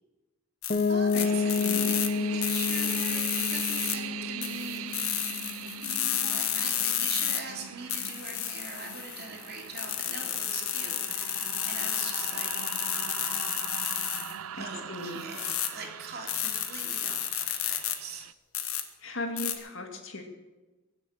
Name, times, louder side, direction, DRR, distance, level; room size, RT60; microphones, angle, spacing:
sound 1, 0.6-2.1 2.4-4.0 4.4-7.4 7.9-14.4 15.2-15.7 16.3-18.0 18.5-18.8 19.4-19.6, left 11 dB, 85° left, 1.5 m, -31 dB
Piano, 0.7-6.4, left 4 dB, 35° left, 1.0 m, -30 dB
voice 1, 0.9-5.4 5.8-12.5 14.5-18.3, right 3 dB, 50° right, 1 dB, 3.1 m, -42 dB
sound 2, 1.2-18.3, right 9 dB, 85° right, 0.5 m, -41 dB
voice 2, 1.6-1.9 14.5-15.2 19.0-20.2, left 2 dB, 65° left, 4 dB, 2.3 m, -37 dB
22.5 x 7.6 x 7.4 m, 1.2 s
head